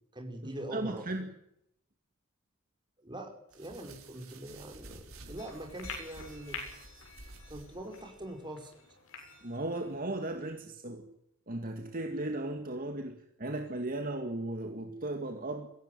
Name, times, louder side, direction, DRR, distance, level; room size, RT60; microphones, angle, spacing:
voice 1, 0.1-1.1 3.0-6.6 7.5-8.7, right 1 dB, 20° right, 4 dB, 4.9 m, -43 dB
voice 2, 0.7-1.3 9.4-11.1 11.5-15.7, right 2 dB, 40° right, 5 dB, 2.2 m, -36 dB
sound 1, 3.5-8.3, right 2 dB, 80° right, 4.7 m, -51 dB
sound 2, 5.4-10.4, left 4 dB, 70° left, 7.2 m, -47 dB
22.5 x 16.5 x 9.3 m, 0.78 s
head